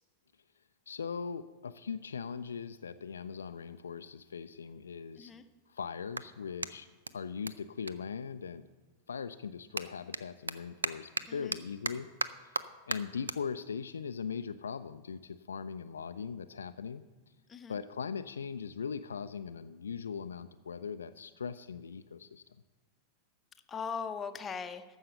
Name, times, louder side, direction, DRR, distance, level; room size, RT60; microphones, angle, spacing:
voice 1, 0.9-5.3 5.7-6.9 7.1-8.6 9.1-12.1 12.4-12.5 12.9-17.0 17.7-22.4, left 6 dB, 70° left, 11 dB, 0.3 m, -40 dB
Clapping, 5.2-8.8 9.1-15.8, right 4 dB, 75° right, 0.4 m, -41 dB
voice 2, 11.3-11.6 17.5-17.8 23.7-24.8, left 6 dB, 20° left, 8 dB, 0.7 m, -39 dB
14.0 x 5.6 x 6.7 m, 1.3 s
figure-of-eight pair, 90°, 0 cm